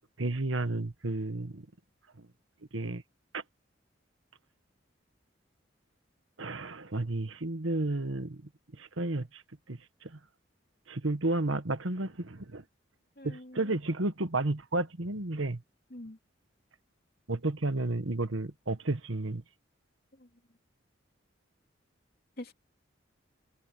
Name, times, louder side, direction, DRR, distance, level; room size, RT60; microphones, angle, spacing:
voice 1, 0.2-1.6 2.7-3.0 3.3-3.4 6.4-8.4 8.8-9.4 9.7-10.1 10.9-12.6 13.2-15.6 17.3-19.4, right 2 dB, 85° right, 1.5 m, -32 dB
voice 2, 13.2-13.7 15.9-16.2 20.2-20.3 22.4-22.5, left 1 dB, 50° left, 2.8 m, -45 dB
head